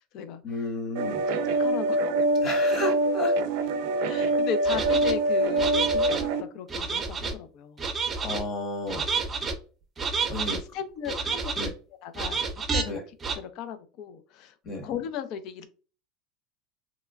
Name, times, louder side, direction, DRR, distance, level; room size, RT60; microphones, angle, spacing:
voice 1, 0.4-1.2 2.4-3.3 8.2-9.1 10.3-10.6 11.2-11.7 12.8-13.0 14.6-14.9, left 2 dB, 40° left, 3 dB, 1.1 m, -32 dB
sound 1, 1.0-6.4, right 1 dB, 70° right, 0.4 m, -24 dB
voice 2, 1.3-2.0 4.0-7.8 10.5-11.4 12.0-13.0 13.3-14.5 14.8-15.7, left 8 dB, 60° left, 11 dB, 0.4 m, -36 dB
sound 2, 4.7-5.1 5.6-6.2 6.7-7.3 7.8-8.4 8.9-9.5 10.0-10.6 11.1-11.7 12.1-12.8 13.2-13.4, right 4 dB, 25° right, 0.6 m, -29 dB
2.9 x 2.2 x 2.4 m, 0.36 s
supercardioid pair, 110°, 0 cm